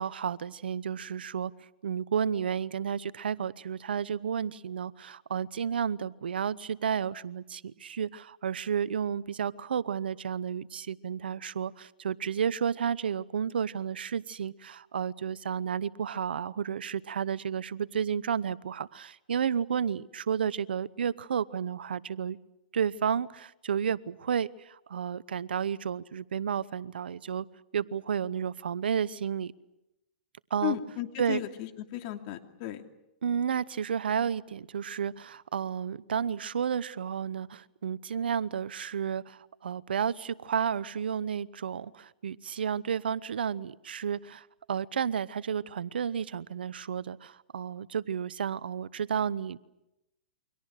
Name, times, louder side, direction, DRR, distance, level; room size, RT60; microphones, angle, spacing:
voice 1, 0.0-1.5 1.8-22.4 22.7-27.5 27.7-29.5 30.5-30.8 31.2-31.4 33.2-49.6, right 7 dB, 80° right, 18 dB, 0.9 m, -32 dB
voice 2, 30.6-32.8, left 13 dB, 45° left, 6 dB, 2.8 m, -35 dB
29.0 x 24.5 x 6.6 m, 0.90 s
hypercardioid pair, 130°, 5 cm